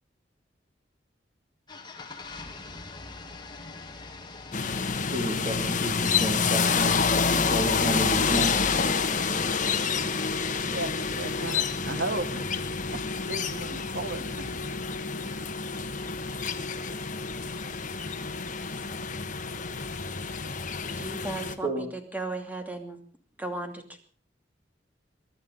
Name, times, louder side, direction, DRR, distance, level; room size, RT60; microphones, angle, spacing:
sound 1, 1.7-10.6, left 3 dB, 25° left, 2.1 m, -44 dB
sound 2, 4.5-21.6, left 5 dB, 45° left, 1.4 m, -28 dB
voice 1, 5.1-7.0 7.3-8.7 21.6-21.9, right 1 dB, 35° right, 1 dB, 2.7 m, -31 dB
voice 2, 10.7-12.5 12.9-14.6, right 2 dB, 85° right, 10 dB, 1.7 m, -35 dB
voice 3, 21.0-23.0 23.4-24.0, right 2 dB, 10° right, 5 dB, 2.6 m, -36 dB
23.0 x 11.5 x 5.4 m, 0.43 s
head